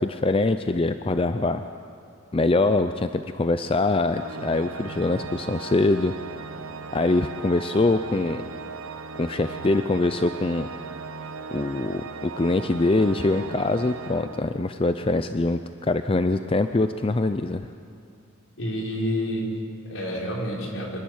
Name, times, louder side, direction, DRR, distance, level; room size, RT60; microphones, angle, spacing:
voice 1, 0.0-1.6 2.3-6.1 6.9-8.4 9.2-10.7 11.5-17.6, left 2 dB, 25° left, 9 dB, 0.4 m, -23 dB
Organ, 4.1-15.0, right 5 dB, 85° right, 0.9 m, -38 dB
voice 2, 18.6-21.0, equal, 70° left, -2 dB, 4.5 m, -29 dB
26.0 x 11.5 x 9.4 m, 2.4 s
head